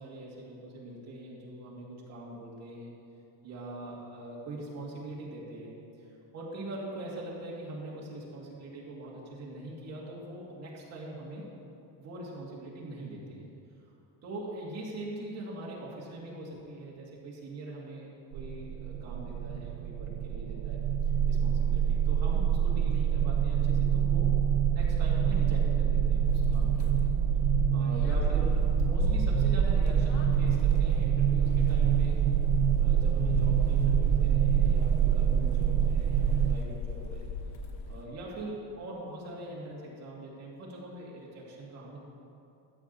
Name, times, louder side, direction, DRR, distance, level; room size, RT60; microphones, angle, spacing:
voice 1, 0.0-2.9 3.4-6.1 6.3-11.4 12.0-13.4 14.2-20.8 21.3-24.3 24.7-27.1 27.7-32.2 32.8-37.3 37.9-42.0, right 1 dB, 35° right, -4 dB, 2.5 m, -42 dB
sound 1, 18.3-36.5, right 8 dB, 60° right, 0.5 m, -26 dB
sound 2, 26.2-38.1, left 4 dB, 75° left, 1.3 m, -37 dB
13.5 x 5.0 x 8.4 m, 2.7 s
cardioid pair, 175°, 43 cm